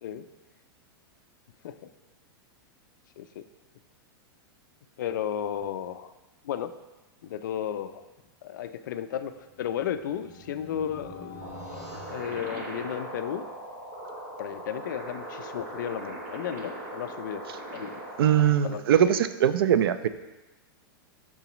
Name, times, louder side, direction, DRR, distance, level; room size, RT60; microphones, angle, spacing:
voice 1, 5.0-6.1 6.4-6.7 7.2-8.1 8.4-13.5 14.4-17.4 17.7-18.0 18.6-18.8, left 9 dB, 55° left, 10 dB, 0.4 m, -34 dB
sound 1, 9.4-13.2, left 1 dB, ahead, 0.6 m, -47 dB
sound 2, 11.4-18.4, right 1 dB, 40° right, 1.0 m, -39 dB
voice 2, 18.2-20.1, right 9 dB, 75° right, 13 dB, 0.4 m, -21 dB
11.5 x 3.9 x 3.0 m, 1.1 s
supercardioid pair, 180°, 12 cm